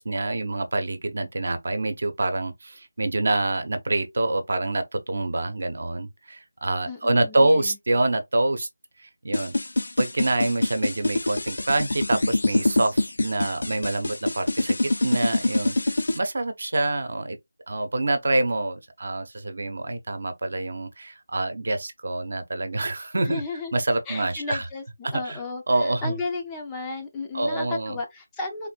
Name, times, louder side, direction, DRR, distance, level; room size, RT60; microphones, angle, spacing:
voice 1, 0.0-8.7 9.0-9.5 10.0-14.8 15.0-17.4 17.7-23.4 23.7-24.7 25.0-25.4 25.7-26.2 27.3-28.0, right 2 dB, 55° right, 0.8 m, -26 dB
voice 2, 6.9-7.8 23.3-23.8 24.1-24.8 25.1-28.7, left 3 dB, 10° left, 0.5 m, -34 dB
sound 1, 9.3-16.2, left 2 dB, 70° left, 0.7 m, -24 dB
3.8 x 2.6 x 2.3 m
figure-of-eight pair, 170°, 0 cm